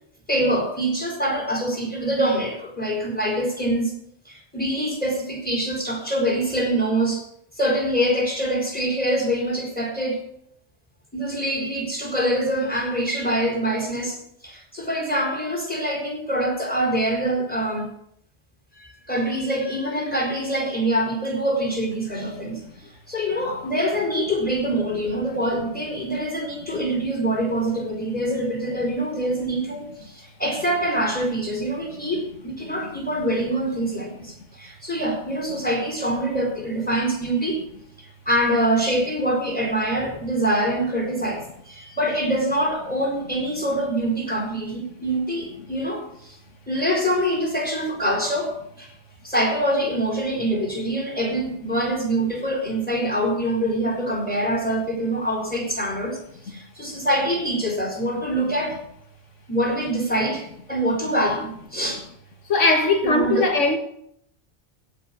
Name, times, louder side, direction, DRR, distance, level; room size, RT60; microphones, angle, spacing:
voice 1, 0.3-4.0 4.3-7.2 7.6-10.2 11.1-14.2 14.4-17.9 18.8-22.6 23.1-37.6 38.3-46.4 46.7-48.9 49.2-56.2 56.5-58.8 59.5-62.0 63.0-63.5, right 1 dB, 5° left, 4.3 m, -25 dB
voice 2, 62.5-63.8, left 3 dB, 85° left, 2.1 m, -19 dB
17.0 x 5.7 x 8.6 m
omnidirectional pair, 1.2 m